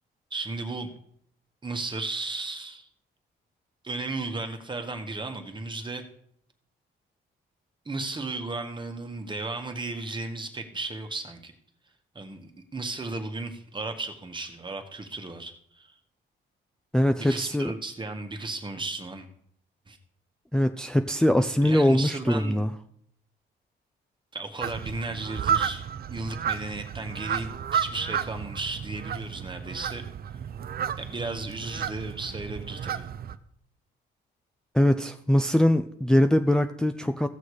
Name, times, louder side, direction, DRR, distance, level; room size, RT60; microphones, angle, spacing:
voice 1, 0.3-0.9 1.6-2.9 3.8-6.0 7.8-11.5 12.1-16.0 17.1-19.3 19.9-20.0 21.6-22.6 24.3-25.8 26.1-30.1 31.0-33.1, right 3 dB, 25° right, 5 dB, 1.6 m, -35 dB
voice 2, 16.9-17.7 20.5-22.7 34.7-37.3, left 1 dB, 5° left, 7 dB, 0.5 m, -22 dB
sound 1, 24.6-33.4, right 8 dB, 50° right, 0.7 m, -32 dB
16.0 x 6.4 x 4.9 m, 0.66 s
cardioid pair, 90°, 20 cm